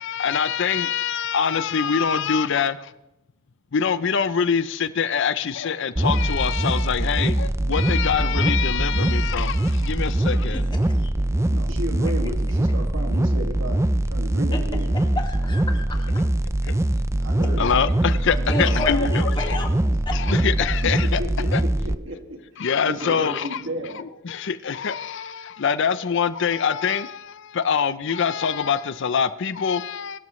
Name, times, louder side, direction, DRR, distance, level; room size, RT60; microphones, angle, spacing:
voice 1, 0.0-2.9 3.7-10.7 16.6-16.8 17.6-19.6 20.1-21.2 21.5-21.6 22.6-23.6 23.9-30.2, left 6 dB, 60° left, 14 dB, 0.5 m, -24 dB
sound 1, 6.0-22.0, right 1 dB, 15° right, 0.4 m, -22 dB
voice 2, 10.5-11.1 14.5-14.6 14.9-16.3 18.5-19.7 20.0-20.1, left 2 dB, 20° left, 3 dB, 1.9 m, -32 dB
voice 3, 11.5-13.8 14.1-15.0 17.2-17.7 18.5-19.3 20.8-24.0, equal, 65° right, 3 dB, 2.2 m, -33 dB
22.5 x 12.5 x 3.2 m, 0.91 s
head